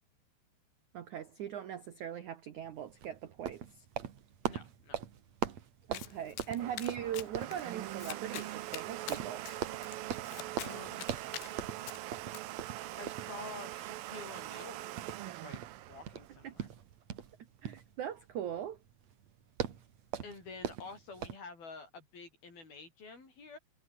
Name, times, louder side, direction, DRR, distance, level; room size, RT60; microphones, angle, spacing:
voice 1, 0.9-3.8 5.9-9.4 16.4-16.5 17.6-18.8, right 10 dB, 70° right, 1.8 m, -40 dB
sound 1, 2.6-21.4, right 9 dB, 50° right, 2.3 m, -42 dB
voice 2, 4.4-5.0 10.6-11.1 13.0-15.6 15.9-16.7 20.2-23.6, left 4 dB, 50° left, 9.3 m, -49 dB
Domestic sounds home sounds, 5.9-12.4, left 14 dB, 75° left, 3.7 m, -47 dB
Domestic sounds home sounds 2, 6.2-16.9, right 16 dB, 90° right, 2.0 m, -43 dB
omnidirectional pair, 5.4 m